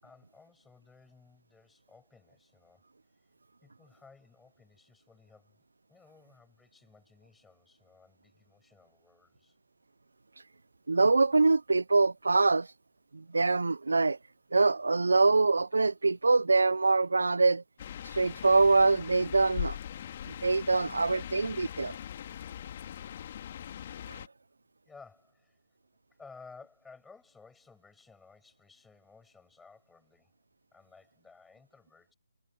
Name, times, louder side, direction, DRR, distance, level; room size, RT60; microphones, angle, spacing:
voice 1, 0.0-2.8 3.6-9.6 24.8-25.6 26.2-30.4 30.7-32.1, left 4 dB, 5° left, 7.3 m, -57 dB
voice 2, 10.9-12.7 13.1-14.2 14.5-17.6 18.0-19.8 20.3-21.9 24.1-24.2, right 3 dB, 80° right, 0.8 m, -24 dB
sound 1, 17.8-24.3, left 10 dB, 40° left, 2.5 m, -41 dB
figure-of-eight pair, 150°, 0 cm